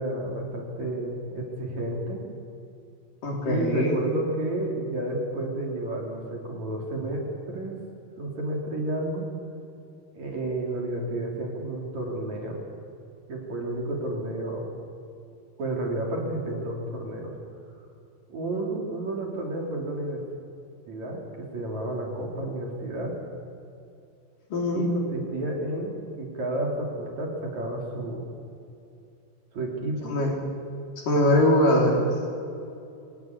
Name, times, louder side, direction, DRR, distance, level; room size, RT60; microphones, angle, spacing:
voice 1, 0.0-2.3 3.4-7.8 8.2-9.3 10.1-12.6 13.3-14.6 15.6-17.3 18.3-20.2 20.9-23.2 24.7-28.2 29.5-30.2, right 1 dB, 45° right, -1 dB, 4.4 m, -31 dB
voice 2, 3.2-4.0 24.5-24.8 30.1-30.3 31.0-32.1, left 1 dB, 55° left, 0 dB, 5.2 m, -22 dB
25.0 x 17.0 x 9.7 m, 2.7 s
omnidirectional pair, 4.7 m